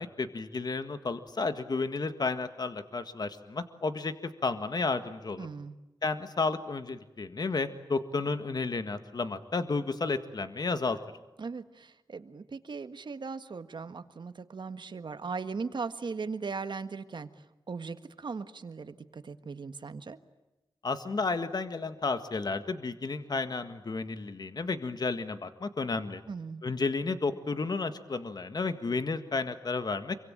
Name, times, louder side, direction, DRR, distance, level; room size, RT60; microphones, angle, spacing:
voice 1, 0.0-4.1 4.4-5.5 6.0-11.0 20.8-26.2 26.6-30.1, left 3 dB, 55° left, 10 dB, 1.7 m, -32 dB
voice 2, 5.4-5.8 11.4-17.3 17.7-20.2 26.3-26.6, right 4 dB, 65° right, 10 dB, 1.6 m, -38 dB
27.0 x 24.5 x 8.9 m, 1.0 s
wide cardioid pair, 100°, 8 cm